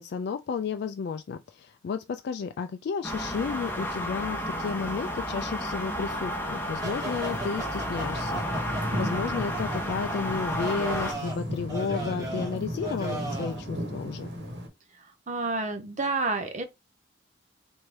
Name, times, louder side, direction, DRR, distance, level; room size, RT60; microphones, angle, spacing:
voice 1, 0.0-14.3, left 5 dB, 55° left, 0.3 m, -33 dB
sound 1, 3.0-11.1, equal, 10° left, 0.9 m, -32 dB
sound 2, 6.8-13.6, right 2 dB, 20° right, 1.3 m, -38 dB
sound 3, 6.8-14.7, equal, 60° right, 1.2 m, -35 dB
voice 2, 15.0-16.6, right 3 dB, 40° right, 0.6 m, -30 dB
3.2 x 2.6 x 4.5 m
head